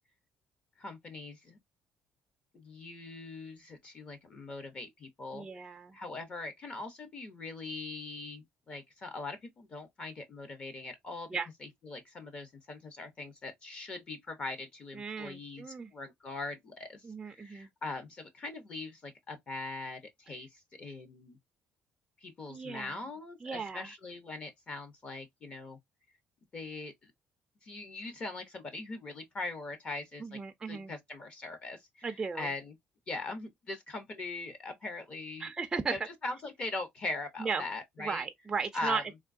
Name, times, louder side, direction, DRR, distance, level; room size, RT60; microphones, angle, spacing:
voice 1, 0.8-1.6 2.5-21.4 22.2-25.8 26.5-27.1 27.6-30.4 30.7-32.7 33.1-35.5 35.9-38.3 38.7-39.0, left 2 dB, 30° left, 0.6 m, -41 dB
voice 2, 5.3-6.0 11.3-11.5 14.9-15.9 17.0-17.7 22.5-23.0 23.4-23.9 30.2-30.9 32.0-32.5 35.4-36.0 37.4-37.6 38.0-39.2, right 5 dB, 15° right, 0.4 m, -36 dB
3.6 x 2.6 x 2.4 m
cardioid pair, 170°, 4 cm